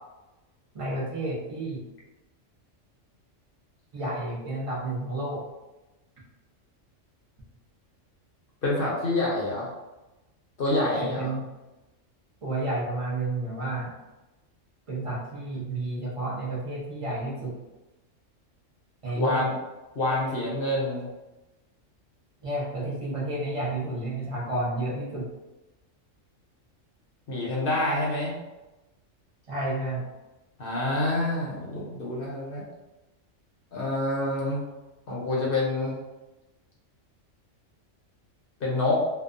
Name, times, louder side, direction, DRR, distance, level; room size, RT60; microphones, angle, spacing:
voice 1, 0.7-1.9 3.9-5.5 10.9-11.5 12.4-13.9 14.9-17.5 19.0-19.5 22.4-25.3 29.5-30.0, right 2 dB, 35° right, -5 dB, 0.6 m, -31 dB
voice 2, 8.6-9.7 10.6-11.3 19.2-19.5 19.9-21.1 27.3-28.3 30.6-32.6 33.7-34.6 35.1-36.0 38.6-39.0, left 2 dB, 55° left, -4 dB, 0.7 m, -27 dB
2.6 x 2.3 x 2.4 m, 1.1 s
omnidirectional pair, 1.3 m